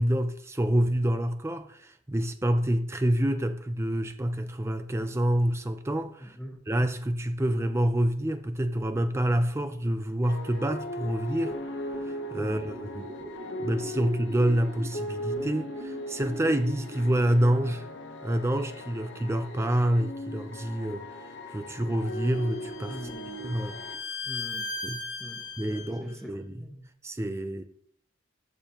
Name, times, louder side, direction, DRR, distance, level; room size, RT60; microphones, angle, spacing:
voice 1, 0.0-6.4 6.7-11.5 12.0-13.1 13.6-17.9 18.2-21.0 21.5-23.0 23.4-23.8 24.8-25.0 25.6-26.4 27.0-27.6, right 1 dB, 15° right, 0.5 m, -27 dB
voice 2, 6.2-6.6 12.4-12.7 22.9-23.4 24.2-24.7 25.2-26.9, equal, ahead, 1.3 m, -43 dB
sound 1, 10.2-24.0, equal, 65° left, 0.9 m, -38 dB
sound 2, 11.2-17.7, equal, 85° right, 1.3 m, -43 dB
Bowed string instrument, 22.1-25.9, left 3 dB, 80° left, 1.8 m, -37 dB
12.5 x 7.1 x 2.9 m
head